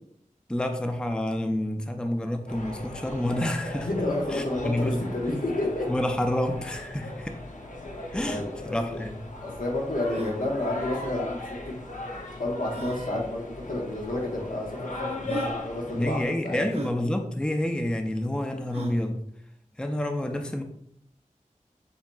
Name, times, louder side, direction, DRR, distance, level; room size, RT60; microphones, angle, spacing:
voice 1, 0.5-3.9 4.3-5.0 5.9-7.4 8.1-9.2 15.2-15.4 15.9-19.2 19.8-20.6, left 1 dB, 5° left, 5 dB, 0.4 m, -28 dB
sound 1, 2.5-16.3, left 2 dB, 65° left, 0.7 m, -38 dB
voice 2, 3.9-5.9 8.1-9.0 9.4-11.8 12.4-16.6, left 1 dB, 85° left, -2 dB, 1.2 m, -30 dB
sound 2, 8.5-8.6 8.8-8.9 9.4-9.5 10.0-10.4 11.7-11.8 12.7-13.0 14.0-14.1 14.8-14.9 15.3-15.6 16.7-17.0 18.7-19.0, right 2 dB, 50° right, 0.7 m, -36 dB
7.0 x 2.8 x 2.3 m, 0.71 s
wide cardioid pair, 45°, 14 cm